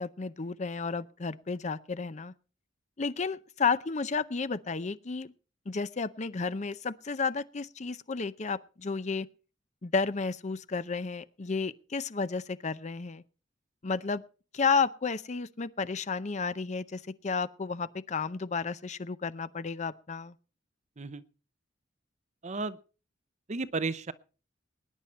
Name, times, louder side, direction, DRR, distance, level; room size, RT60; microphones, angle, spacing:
voice 1, 0.0-2.3 3.0-5.3 5.7-9.3 9.8-13.2 13.8-14.2 14.5-20.3, left 4 dB, 40° left, 0.6 m, -32 dB
voice 2, 22.4-22.8 23.5-24.1, right 3 dB, 40° right, 0.7 m, -33 dB
20.0 x 10.0 x 4.3 m
head